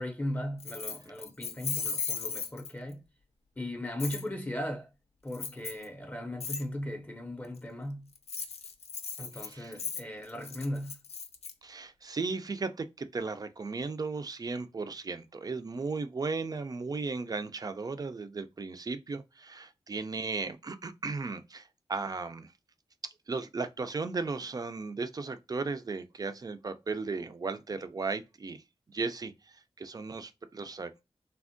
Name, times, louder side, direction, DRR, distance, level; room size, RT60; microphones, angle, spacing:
voice 1, 0.0-3.0 3.6-4.9 5.2-8.1 9.2-11.0, left 1 dB, 15° left, 0.5 m, -37 dB
Keys jangling, 0.6-2.9 4.0-4.2 5.3-5.8 6.4-6.6 8.1-11.5, left 5 dB, 85° left, 0.4 m, -36 dB
voice 2, 9.4-9.7 11.6-22.5 23.0-28.6 28.9-29.3 29.8-31.0, right 4 dB, 40° right, 0.4 m, -36 dB
3.4 x 2.1 x 2.5 m
wide cardioid pair, 85°, 10 cm